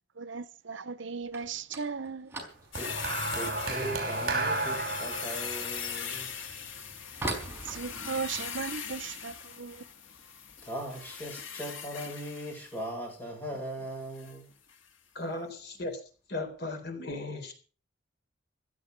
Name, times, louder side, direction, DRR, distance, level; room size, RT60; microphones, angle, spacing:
voice 1, 0.2-2.3 7.7-9.8, right 5 dB, 75° right, 0.9 m, -37 dB
sound 1, 1.2-12.0 12.2-12.8 13.1-13.4 13.7-13.8 14.5-14.6 15.5-15.8 16.1-16.6, right 2 dB, 10° right, 4.7 m, -44 dB
sound 2, 2.7-12.9 14.1-14.4 14.7-14.8, left 7 dB, 85° left, 1.8 m, -40 dB
voice 2, 2.8-6.3 10.6-14.5, right 1 dB, 10° left, 7.6 m, -39 dB
sound 3, 2.8-7.2 8.1-8.4, right 2 dB, 50° right, 5.8 m, -33 dB
voice 3, 15.1-16.0 16.3-17.5, left 2 dB, 55° left, 4.0 m, -36 dB
16.5 x 12.5 x 5.3 m
head